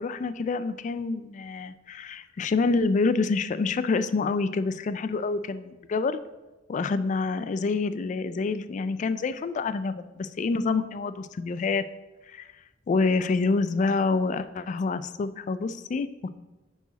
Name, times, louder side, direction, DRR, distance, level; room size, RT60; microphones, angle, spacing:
voice 1, 0.0-6.2 6.7-11.8 12.3-12.5 12.9-16.3, left 4 dB, 40° left, 13 dB, 0.3 m, -27 dB
7.9 x 4.8 x 4.0 m, 1.1 s
head